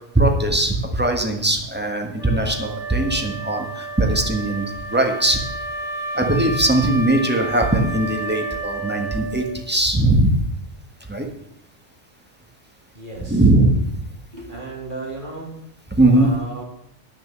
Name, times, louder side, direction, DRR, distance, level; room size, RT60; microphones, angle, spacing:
voice 1, 0.1-5.4 6.1-10.3 11.1-11.2 13.3-13.9 16.0-16.3, right 1 dB, 10° right, 2 dB, 1.6 m, -19 dB
Wind instrument woodwind instrument, 2.2-9.7, right 2 dB, 75° right, 2.4 m, -31 dB
voice 2, 12.9-13.5 14.3-15.5 16.1-16.6, right 2 dB, 40° right, -3 dB, 3.5 m, -34 dB
10.0 x 6.8 x 7.5 m, 0.78 s
omnidirectional pair, 1.2 m